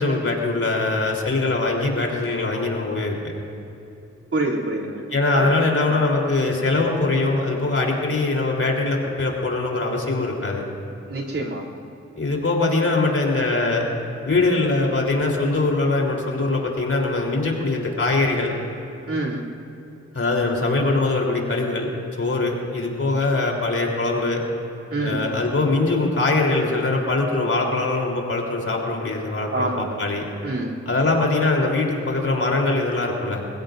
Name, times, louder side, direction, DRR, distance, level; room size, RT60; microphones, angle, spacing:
voice 1, 0.0-3.3 5.1-10.6 12.2-13.9 14.2-18.5 20.1-21.9 22.2-24.4 25.0-30.3 30.9-33.4, left 2 dB, 50° left, -1 dB, 3.9 m, -22 dB
voice 2, 4.3-5.0 5.3-5.5 5.8-5.9 11.1-11.6 19.1-19.4 24.9-25.2 29.5-30.0 30.4-30.8, right 2 dB, 50° right, -4 dB, 3.2 m, -26 dB
27.5 x 16.0 x 2.7 m, 2.8 s
cardioid pair, 45°, 29 cm